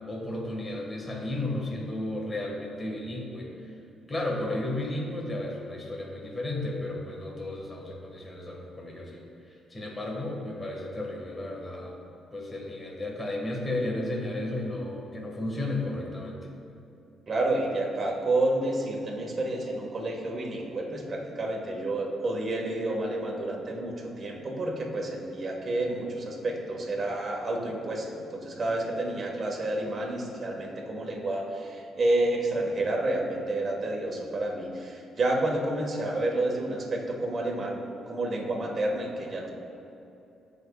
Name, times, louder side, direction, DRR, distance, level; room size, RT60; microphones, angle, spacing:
voice 1, 0.1-3.7 4.1-9.2 9.5-11.9 12.3-16.4, left 1 dB, 25° left, -2 dB, 1.8 m, -33 dB
voice 2, 17.3-39.5, right 2 dB, 40° right, -1 dB, 1.7 m, -30 dB
14.5 x 5.4 x 2.4 m, 2.9 s
cardioid pair, 90°, 0 cm